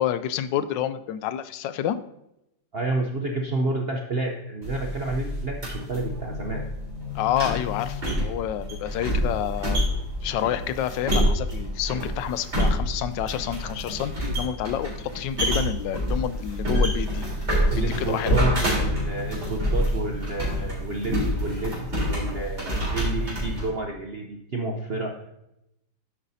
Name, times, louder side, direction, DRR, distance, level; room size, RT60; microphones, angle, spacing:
voice 1, 0.0-2.0 7.1-9.8 10.2-17.2 17.8-18.4, left 10 dB, 80° left, 13 dB, 1.2 m, -28 dB
voice 2, 2.7-6.6 17.7-21.8 22.0-25.1, right 2 dB, 55° right, 2 dB, 0.6 m, -30 dB
sound 1, 4.6-23.7, equal, 35° right, 4.0 m, -27 dB
10.5 x 8.1 x 2.7 m, 0.85 s
omnidirectional pair, 2.0 m